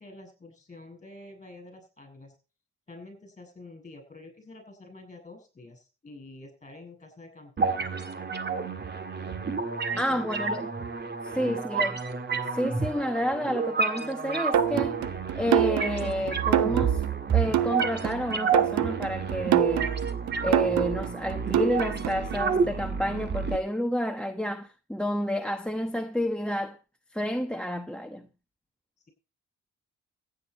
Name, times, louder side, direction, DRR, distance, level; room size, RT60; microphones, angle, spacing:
voice 1, 0.0-2.4 2.9-7.9 9.9-10.6 11.3-11.6, left 2 dB, 25° left, 7.7 m, -48 dB
sound 1, 7.6-23.6, right 5 dB, 35° right, 1.9 m, -30 dB
voice 2, 10.0-10.6 11.2-12.0 12.5-15.0 15.4-17.0 17.3-19.9 20.4-26.8 27.1-28.3, equal, 5° left, 1.1 m, -30 dB
sound 2, 14.5-22.3, right 12 dB, 70° right, 0.9 m, -27 dB
15.5 x 9.6 x 4.3 m
cardioid pair, 90°, 30 cm